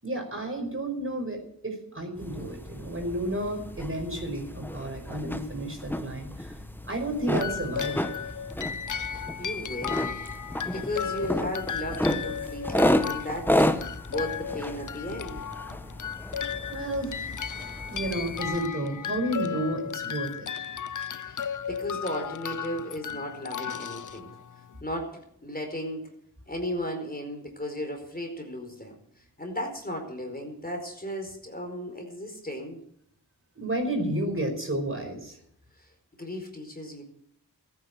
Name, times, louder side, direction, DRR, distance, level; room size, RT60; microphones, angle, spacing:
voice 1, 0.0-6.6 6.8-8.2 16.7-17.3 17.9-20.5 33.5-35.4, right 1 dB, 35° right, 3 dB, 5.3 m, -31 dB
sound 1, 2.2-18.7, left 1 dB, 5° left, 1.3 m, -32 dB
sound 2, 7.4-24.8, left 8 dB, 50° left, 0.7 m, -35 dB
voice 2, 9.0-10.2 10.7-13.7 14.1-15.4 21.1-24.3 24.8-26.1 26.5-32.8 35.8-37.0, left 1 dB, 20° left, 3 dB, 4.6 m, -35 dB
15.0 x 9.6 x 7.8 m, 0.71 s
cardioid pair, 40°, 40 cm